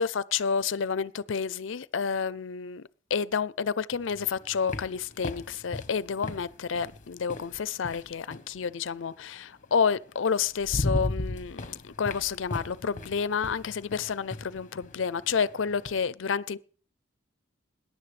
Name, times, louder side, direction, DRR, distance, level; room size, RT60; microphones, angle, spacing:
voice 1, 0.0-2.8 3.1-16.6, left 6 dB, 75° left, 0.5 m, -30 dB
sound 1, 4.0-8.6 9.8-9.9 10.3-16.0, left 1 dB, 40° left, 1.0 m, -36 dB
21.5 x 10.5 x 3.3 m
head